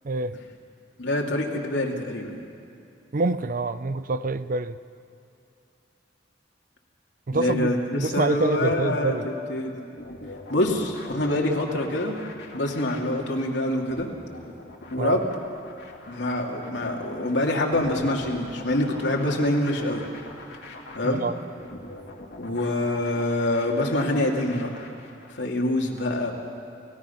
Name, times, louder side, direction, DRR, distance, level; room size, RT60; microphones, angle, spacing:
voice 1, 0.0-0.4 3.1-4.8 7.3-9.3 15.0-15.2 21.0-21.4, right 3 dB, 50° right, 13 dB, 0.5 m, -26 dB
voice 2, 1.0-2.4 7.3-9.8 10.5-12.2 12.5-14.1 14.9-15.2 16.1-20.1 20.9-21.2 22.4-24.7 25.4-26.3, left 1 dB, 85° left, -1 dB, 2.6 m, -25 dB
sound 1, 10.0-25.4, left 2 dB, 70° left, 2.5 m, -43 dB
29.5 x 16.5 x 5.8 m, 2.6 s
head